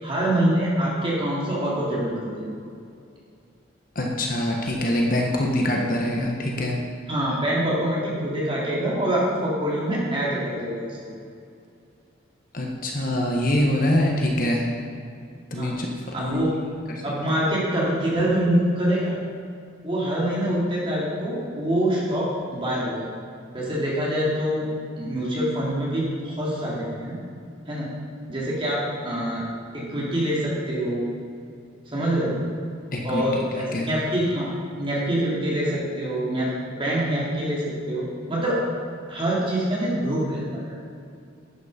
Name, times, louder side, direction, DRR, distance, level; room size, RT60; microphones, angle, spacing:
voice 1, 0.0-2.5 7.1-11.0 15.5-15.8 16.1-16.5 17.0-19.2 19.8-23.1 23.5-24.7 25.0-27.1 27.7-27.9 28.3-29.4 29.7-31.1 31.9-32.4 33.0-34.5 34.8-37.6 37.9-38.6 39.1-40.9, right 1 dB, 25° right, -6 dB, 3.3 m, -25 dB
voice 2, 3.9-6.8 12.5-14.6 15.5-15.9 16.2-16.5 16.9-17.0 32.9-33.4 33.7-33.9, left 1 dB, 45° left, 0 dB, 1.4 m, -24 dB
12.0 x 9.3 x 5.2 m, 2.4 s
head